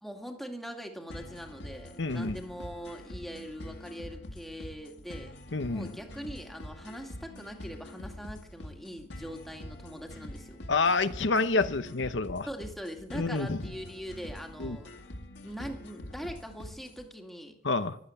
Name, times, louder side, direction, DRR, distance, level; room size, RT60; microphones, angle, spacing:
voice 1, 0.0-5.3 5.7-10.6 12.5-14.9 15.4-17.5, equal, ahead, 2.1 m, -42 dB
Game losing screen background music, 1.1-17.1, left 1 dB, 70° left, 2.1 m, -45 dB
voice 2, 2.0-2.4 5.5-5.9 10.7-12.5 13.1-13.6 14.6-14.8 17.6-18.0, left 3 dB, 85° left, 1.0 m, -28 dB
15.5 x 12.5 x 7.1 m
head